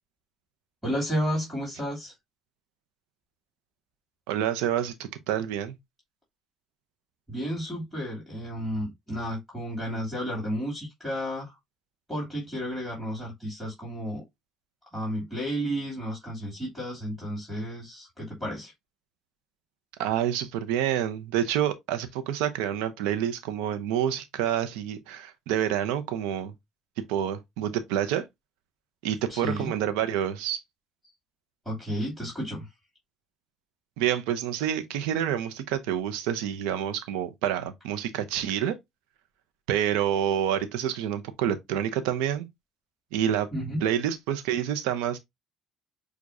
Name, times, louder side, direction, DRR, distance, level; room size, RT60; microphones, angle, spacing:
voice 1, 0.8-2.1 7.3-11.6 12.1-14.2 14.9-18.7 29.3-29.7 31.7-32.7 43.5-43.8, equal, ahead, 2.6 m, -32 dB
voice 2, 4.3-4.9 5.3-5.8 20.0-26.5 27.1-28.2 29.0-30.6 34.0-38.8 39.7-42.5 43.1-43.5 43.8-45.2, right 10 dB, 85° right, 0.7 m, -28 dB
6.4 x 2.4 x 2.6 m
supercardioid pair, 95°, 0 cm